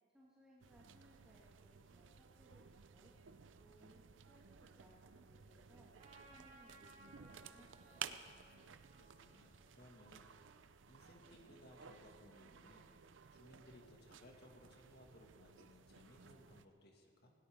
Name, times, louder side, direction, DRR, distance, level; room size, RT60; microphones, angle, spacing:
voice 1, 0.1-3.1 3.6-8.2, equal, 5° right, -6 dB, 2.0 m, -67 dB
sound 1, 0.6-16.6, right 8 dB, 80° right, 0.6 m, -56 dB
sound 2, 1.2-13.8, right 1 dB, 60° right, 2.7 m, -77 dB
Trumpet, 6.0-10.6, right 1 dB, 40° right, 2.9 m, -64 dB
voice 2, 8.5-10.3 10.9-12.9 13.3-17.3, left 1 dB, 60° left, 1 dB, 2.1 m, -62 dB
19.5 x 17.0 x 3.7 m, 2.1 s
head